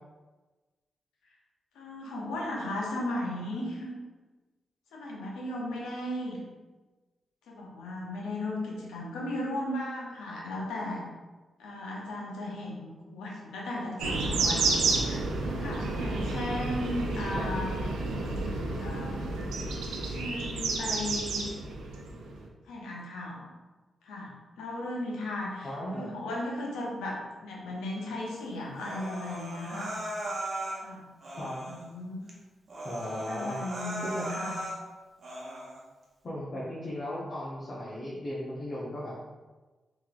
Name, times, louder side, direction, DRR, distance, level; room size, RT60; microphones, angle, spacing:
voice 1, 1.7-3.9 4.9-6.4 7.5-11.0 11.6-14.6 15.1-15.2 15.6-17.7 18.8-19.2 20.1-21.5 22.7-23.5 24.0-29.9 30.8-31.1 31.6-32.3 33.0-34.6, left 1 dB, 85° left, -3 dB, 0.7 m, -36 dB
sound 1, 14.0-22.5, right 3 dB, 85° right, 0.4 m, -30 dB
voice 2, 25.6-26.1 31.4-31.6 32.8-33.6 34.0-34.3 36.2-39.1, left 1 dB, 50° left, -9 dB, 0.9 m, -36 dB
Human voice, 28.8-30.8 31.2-31.9 32.3-32.4 32.7-34.8 35.2-35.8, right 1 dB, 55° right, 0.8 m, -37 dB
3.6 x 3.1 x 2.4 m, 1.2 s
supercardioid pair, 45°, 0 cm